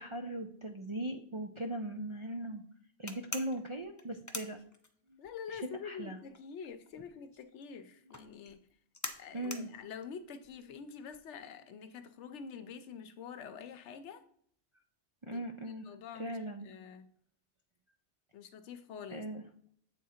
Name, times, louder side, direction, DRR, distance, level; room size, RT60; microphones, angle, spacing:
voice 1, 0.0-2.6 3.0-4.6 5.5-6.2 9.3-9.7 15.2-15.9 16.1-16.7 19.1-19.4, right 1 dB, 50° right, 0.3 m, -39 dB
sound 1, 3.1-5.3 5.6-11.4, left 3 dB, 30° left, 0.3 m, -44 dB
voice 2, 5.2-8.6 9.2-14.2 15.2-17.1 18.3-19.2, left 6 dB, 75° left, 0.9 m, -46 dB
8.0 x 3.7 x 4.3 m
omnidirectional pair, 1.2 m